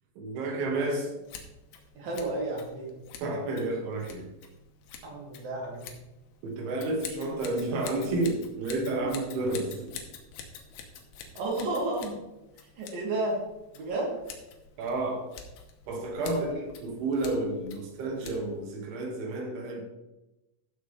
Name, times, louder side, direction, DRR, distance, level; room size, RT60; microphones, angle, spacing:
voice 1, 0.2-1.1 3.2-4.3 6.4-9.9 14.8-15.3 15.9-16.5 16.8-19.8, right 2 dB, 80° right, 1 dB, 4.1 m, -31 dB
Scissors, 1.2-18.7, left 6 dB, 70° left, 2.7 m, -48 dB
voice 2, 2.0-2.9 5.0-5.8 9.0-9.1 11.4-12.1 12.8-13.4 13.7-14.2 16.3-16.6, right 2 dB, 55° right, -2 dB, 3.7 m, -32 dB
14.0 x 6.5 x 3.4 m, 0.96 s
omnidirectional pair, 5.4 m